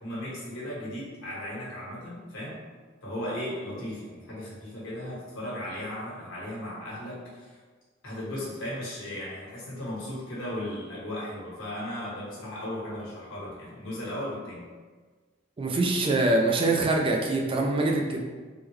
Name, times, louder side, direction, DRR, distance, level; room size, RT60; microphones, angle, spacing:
voice 1, 0.0-2.6 3.0-7.6 8.0-14.7, left 1 dB, 85° left, -7 dB, 1.3 m, -36 dB
voice 2, 15.6-18.2, right 2 dB, 25° right, 1 dB, 0.3 m, -24 dB
3.7 x 2.2 x 3.1 m, 1.4 s
head